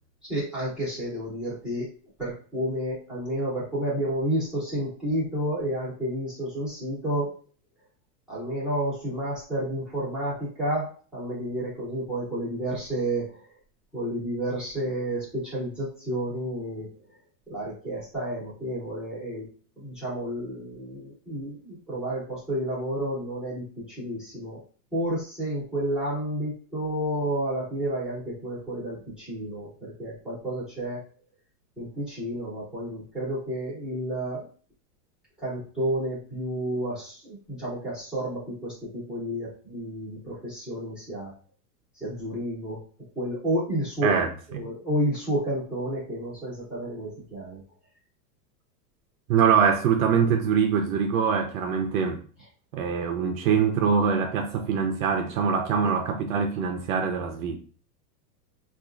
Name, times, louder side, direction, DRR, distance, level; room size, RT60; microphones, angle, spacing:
voice 1, 0.3-1.9 2.2-7.3 8.3-10.9 11.1-13.3 13.9-16.9 17.5-19.4 19.8-24.6 24.9-31.0 31.8-34.5 35.4-37.2 37.5-41.3 42.0-42.8 43.2-44.2 44.5-47.6 55.8-55.9, right 1 dB, ahead, 0.9 m, -30 dB
voice 2, 44.0-44.7 49.3-52.2 52.7-57.5, right 6 dB, 60° right, 0.5 m, -24 dB
4.1 x 2.4 x 2.4 m
supercardioid pair, 165°, 50 cm